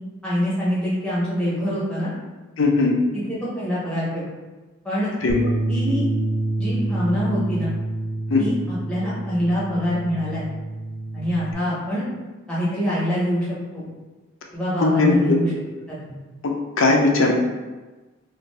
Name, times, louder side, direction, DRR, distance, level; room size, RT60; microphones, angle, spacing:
voice 1, 0.2-2.1 3.1-4.3 4.8-5.1 5.7-6.1 6.6-7.7 8.4-10.4 11.1-12.1 12.5-13.8 14.5-15.5 15.9-16.0, equal, 5° left, -8 dB, 0.6 m, -25 dB
voice 2, 2.6-2.9 5.2-5.3 8.3-8.4 14.8-15.4 16.4-17.3, left 3 dB, 65° left, 1 dB, 0.5 m, -18 dB
Bass guitar, 5.3-11.5, right 2 dB, 50° right, 0.4 m, -27 dB
2.6 x 2.4 x 3.2 m, 1.2 s
head